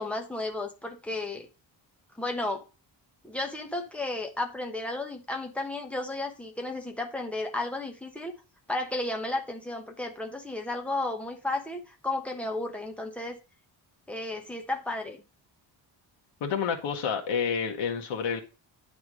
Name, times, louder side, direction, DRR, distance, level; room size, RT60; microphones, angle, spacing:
voice 1, 0.0-1.5 2.2-2.6 3.2-8.3 8.7-13.4 14.1-15.2, left 2 dB, 5° left, 1.1 m, -33 dB
voice 2, 16.4-18.4, left 6 dB, 85° left, 1.4 m, -29 dB
9.5 x 3.5 x 6.2 m
wide cardioid pair, 165°, 45 cm